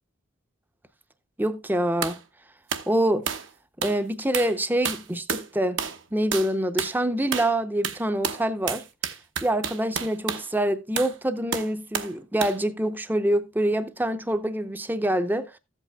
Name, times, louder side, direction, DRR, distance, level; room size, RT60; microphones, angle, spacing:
voice 1, 1.4-2.2 2.9-3.3 3.8-5.8 6.1-8.8 9.4-15.6, right 1 dB, 10° right, 0.6 m, -25 dB
sound 1, 2.0-2.2 2.7-2.9 3.3-3.5 3.8-4.0 4.3-4.6 4.8-5.5 5.8-6.0 6.3-6.5 6.8-7.0 7.3-7.6 7.8-10.5 11.0-11.2 11.5-12.1 12.4-12.6, right 7 dB, 70° right, 1.0 m, -30 dB
14.5 x 8.2 x 2.2 m
head